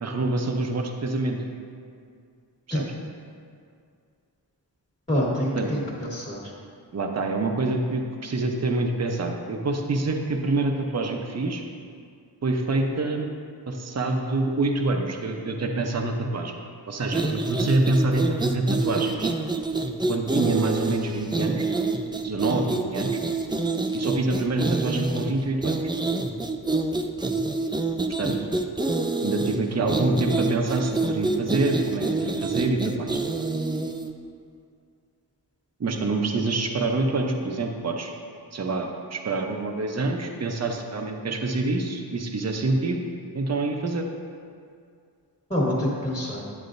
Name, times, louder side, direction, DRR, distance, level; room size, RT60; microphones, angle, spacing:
voice 1, 0.0-1.4 2.7-2.9 5.6-5.7 6.9-11.6 12.4-13.3 13.7-16.5 16.9-19.3 20.1-21.7 22.2-23.1 23.9-25.8 28.2-28.5 29.2-33.2 35.8-38.1 38.5-43.0 43.3-44.1, right 2 dB, 40° right, 3 dB, 0.7 m, -26 dB
voice 2, 5.1-6.5 45.5-46.4, equal, 15° left, -9 dB, 1.5 m, -26 dB
sound 1, 17.1-34.1, right 3 dB, 10° right, 0.3 m, -27 dB
9.6 x 7.9 x 2.6 m, 2.3 s
wide cardioid pair, 90°, 42 cm